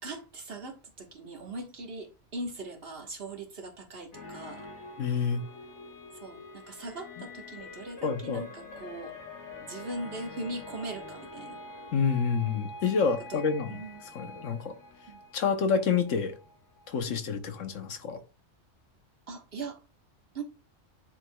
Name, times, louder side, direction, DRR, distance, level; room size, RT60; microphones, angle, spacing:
voice 1, 0.0-4.7 6.2-9.1 9.6-11.6 13.3-13.4 13.7-14.0 15.1-15.2 17.1-17.2 19.3-19.8 20.3-20.4, right 2 dB, 55° right, 1.6 m, -40 dB
sound 1, 4.1-17.4 17.7-18.0, left 2 dB, 70° left, 1.6 m, -46 dB
voice 2, 5.0-5.4 8.0-8.4 11.9-13.8 14.1-14.7 15.3-16.4 16.9-18.2, left 5 dB, 85° left, 1.3 m, -28 dB
9.9 x 4.6 x 2.3 m
omnidirectional pair, 1.3 m